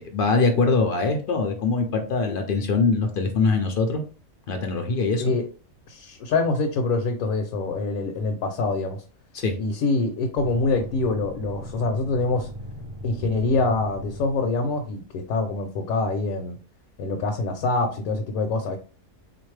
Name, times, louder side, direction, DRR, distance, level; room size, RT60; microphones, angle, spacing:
voice 1, 0.0-4.0 4.5-5.2 9.3-9.5, left 3 dB, 60° left, 4 dB, 0.6 m, -23 dB
voice 2, 5.9-9.0 9.6-12.5 13.0-16.6 17.0-18.8, left 3 dB, 75° left, 4 dB, 1.0 m, -25 dB
sound 1, 10.4-14.9, equal, 50° right, 0.3 m, -38 dB
3.9 x 2.5 x 3.1 m, 0.38 s
omnidirectional pair, 1.5 m